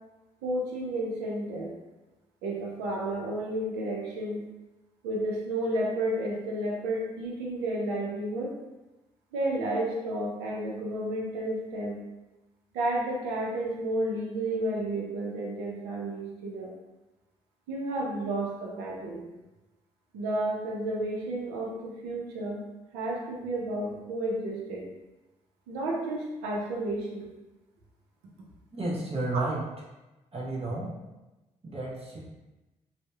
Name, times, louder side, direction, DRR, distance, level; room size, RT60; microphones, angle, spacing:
voice 1, 0.4-1.7 2.4-4.4 5.0-8.5 9.3-12.0 12.7-16.7 17.7-19.2 20.1-22.6 22.9-24.8 25.7-27.3, right 1 dB, 85° right, -3 dB, 0.5 m, -31 dB
voice 2, 28.7-29.6 30.3-30.9 31.6-32.2, right 2 dB, 40° right, -5 dB, 0.8 m, -32 dB
2.7 x 2.0 x 2.2 m, 1.1 s
hypercardioid pair, 45°, 16 cm